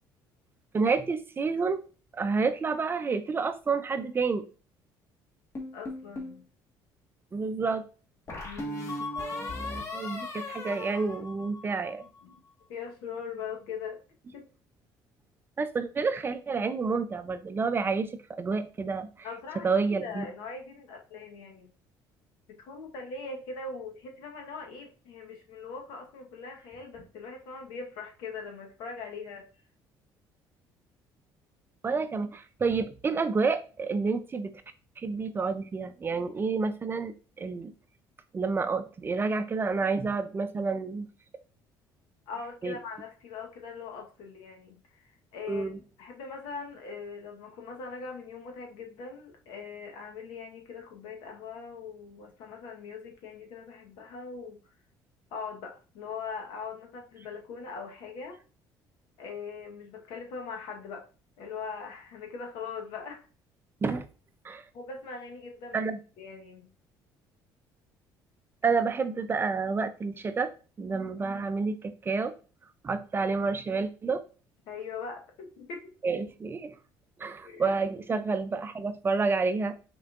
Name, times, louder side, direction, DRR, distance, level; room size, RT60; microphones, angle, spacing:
voice 1, 0.7-1.8 2.1-4.4 7.3-7.8 9.2-12.0 15.6-19.3 19.6-20.3 31.8-34.5 35.0-37.7 38.3-41.1 42.6-42.7 45.5-45.8 63.8-64.1 64.4-64.6 65.7-66.0 68.6-70.5 70.8-72.3 72.8-74.2 76.0-76.7 77.2-79.8, right 4 dB, 25° right, 10 dB, 0.5 m, -29 dB
sound 1, 5.6-6.4 8.3-11.9, left 2 dB, 35° left, 1.5 m, -37 dB
voice 2, 5.7-6.4 8.4-9.0 12.0-12.4 12.7-14.0 14.3-14.5 19.2-21.7 22.5-29.5 42.3-45.7 46.0-54.6 55.3-58.4 59.2-61.1 61.4-63.3 64.7-65.9 66.2-66.7 74.7-75.9 77.4-77.7, left 5 dB, 85° left, 3 dB, 1.1 m, -41 dB
5.6 x 3.8 x 2.4 m, 0.36 s
cardioid pair, 100°, 8 cm